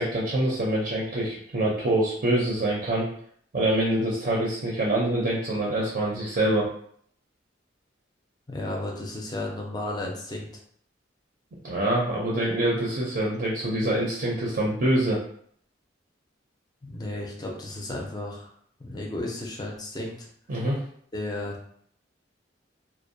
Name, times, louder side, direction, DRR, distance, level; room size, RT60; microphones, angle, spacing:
voice 1, 0.0-3.1 3.5-6.7 11.6-15.2 20.5-20.8, right 1 dB, 50° right, -4 dB, 0.5 m, -25 dB
voice 2, 8.5-10.5 16.9-18.5 18.8-20.3 21.1-21.6, left 1 dB, 20° left, 0 dB, 0.4 m, -33 dB
2.5 x 2.0 x 2.6 m, 0.63 s
head